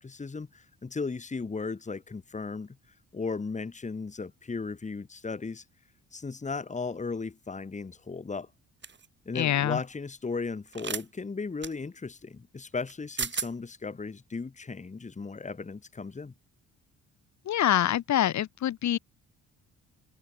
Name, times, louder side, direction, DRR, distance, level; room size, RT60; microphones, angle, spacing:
voice 1, 0.0-2.8 3.1-5.6 6.1-8.5 9.3-16.3, left 4 dB, 25° left, 2.1 m, -36 dB
sound 1, 8.8-9.1 10.7-11.0 11.6-11.7 12.9-13.0 13.2-13.5, right 6 dB, 40° right, 3.8 m, -33 dB
voice 2, 9.3-9.8 17.5-19.0, left 11 dB, 65° left, 2.1 m, -25 dB
cardioid pair, 90°, 30 cm